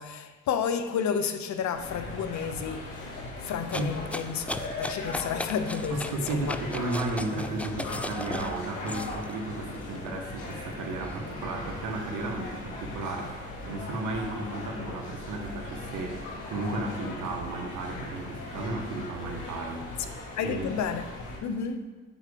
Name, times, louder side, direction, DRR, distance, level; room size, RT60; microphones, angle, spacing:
voice 1, 0.0-2.9 3.4-6.5 20.0-20.1 20.4-21.1 21.4-21.8, left 7 dB, 70° left, 0.8 m, -31 dB
sound 1, 1.7-21.4, left 2 dB, 85° left, 2.3 m, -39 dB
sound 2, 3.7-9.3 9.8-11.2, left 1 dB, 5° left, 0.3 m, -37 dB
voice 2, 5.9-20.7, right 2 dB, 85° right, 1.5 m, -34 dB
7.9 x 4.8 x 6.7 m
cardioid pair, 90°, 30 cm